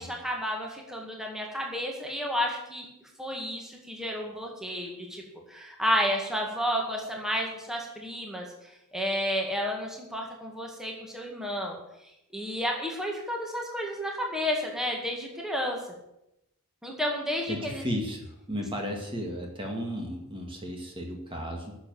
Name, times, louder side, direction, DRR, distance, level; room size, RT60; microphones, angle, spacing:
voice 1, 0.0-15.8 16.8-17.8, equal, ahead, 0 dB, 2.0 m, -32 dB
voice 2, 17.5-21.8, equal, 25° right, 1 dB, 2.0 m, -34 dB
10.5 x 7.2 x 9.4 m, 0.85 s
head